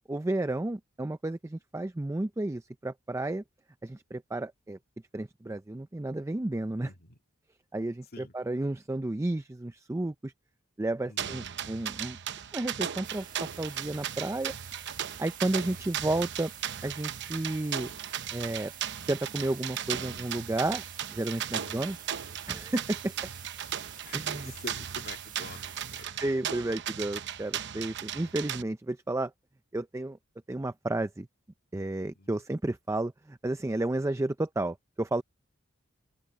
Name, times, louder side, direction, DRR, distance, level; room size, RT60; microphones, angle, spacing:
voice 1, 0.1-3.4 3.8-4.8 5.1-6.9 7.7-10.3 10.8-12.2 12.5-14.5 15.2-16.5 16.8-17.9 18.3-18.7 19.1-20.8 21.1-22.0 22.5-23.1 24.1-24.5 26.2-29.3 29.7-30.2 30.5-31.3 31.7-35.2, right 2 dB, 15° right, 0.4 m, -32 dB
voice 2, 6.8-7.2 8.1-8.3 11.0-11.4 21.5-21.8 24.0-26.4 32.1-32.3, left 2 dB, 50° left, 2.4 m, -47 dB
sound 1, 11.2-28.6, right 9 dB, 60° right, 0.8 m, -37 dB
sound 2, 13.0-26.1, right 10 dB, 40° right, 1.4 m, -48 dB
open air
head